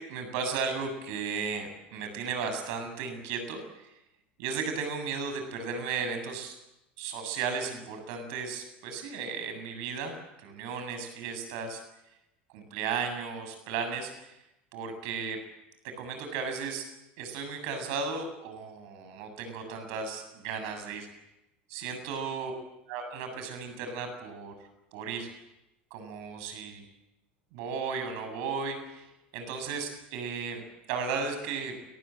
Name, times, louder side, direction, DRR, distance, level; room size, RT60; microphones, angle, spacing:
voice 1, 0.0-4.0 4.4-6.6 7.0-11.8 12.5-14.4 14.7-15.4 16.0-16.8 17.2-21.1 21.7-22.5 22.9-25.3 25.9-26.8 27.5-30.6 30.9-31.8, right 5 dB, 60° right, 7 dB, 7.5 m, -35 dB
29.5 x 20.0 x 7.8 m, 0.92 s
hypercardioid pair, 80°, 6 cm